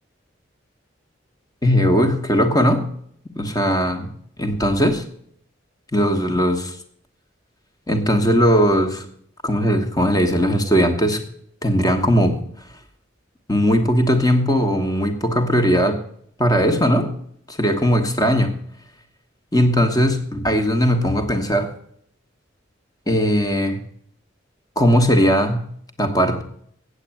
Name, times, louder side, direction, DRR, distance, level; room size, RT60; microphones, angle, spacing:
voice 1, 1.6-2.9 3.4-4.1 4.4-5.0 5.9-6.7 7.9-9.1 9.4-11.2 11.6-12.4 13.5-16.0 16.4-17.1 17.5-18.5 19.5-21.7 23.1-23.8 24.8-25.6 26.0-26.4, equal, 20° left, 6 dB, 1.3 m, -18 dB
8.3 x 8.2 x 8.7 m, 0.65 s
head